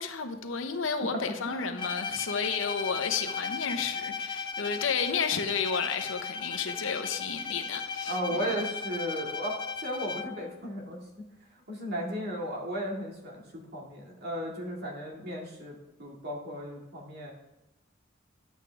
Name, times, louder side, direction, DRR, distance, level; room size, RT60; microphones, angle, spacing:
voice 1, 0.0-8.6, left 6 dB, 85° left, 0.9 m, -32 dB
voice 2, 1.4-1.8 8.1-11.2 11.7-17.3, equal, 55° right, 2.1 m, -35 dB
Bowed string instrument, 1.8-10.5, left 5 dB, 25° left, 0.4 m, -36 dB
10.0 x 8.2 x 3.4 m
head